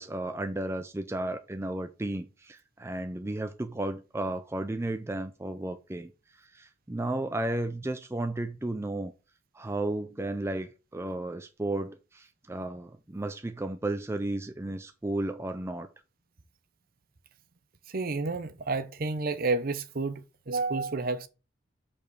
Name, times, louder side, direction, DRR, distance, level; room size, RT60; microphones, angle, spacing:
voice 1, 0.0-9.1 9.5-15.9, right 1 dB, 15° right, 0.4 m, -33 dB
voice 2, 17.9-21.3, right 3 dB, 45° right, 0.7 m, -30 dB
5.3 x 4.3 x 6.1 m
head